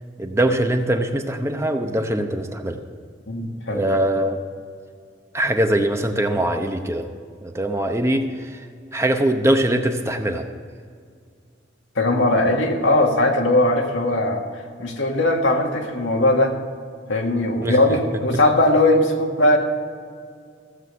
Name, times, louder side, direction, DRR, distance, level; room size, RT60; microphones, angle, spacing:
voice 1, 0.2-2.8 3.7-4.4 5.3-7.1 7.4-8.6 8.9-10.4 17.6-17.8, right 1 dB, 15° right, 5 dB, 0.8 m, -22 dB
voice 2, 3.3-3.8 11.9-14.4 14.8-16.5 17.1-19.6, left 1 dB, 85° left, 2 dB, 1.9 m, -19 dB
15.5 x 7.9 x 6.7 m, 2.1 s
head